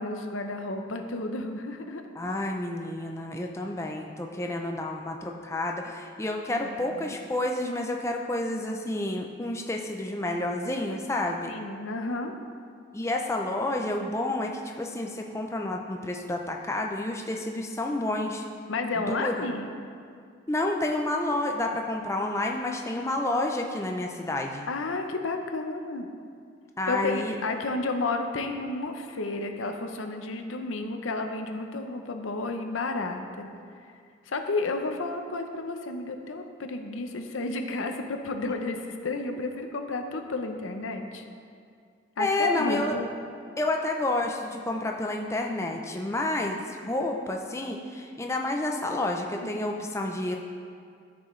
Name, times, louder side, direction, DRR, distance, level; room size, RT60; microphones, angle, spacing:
voice 1, 0.0-2.0 6.6-7.2 11.4-12.3 18.7-19.7 24.7-26.1 26.9-33.5 34.3-41.2 42.2-43.1 49.4-49.6, left 3 dB, 90° left, 5 dB, 0.7 m, -32 dB
voice 2, 2.2-11.5 12.9-18.4 19.0-19.4 20.5-24.7 26.8-27.3 42.2-42.9 43.6-50.4, left 2 dB, 15° left, 1 dB, 0.5 m, -30 dB
12.5 x 6.2 x 3.2 m, 2.2 s
head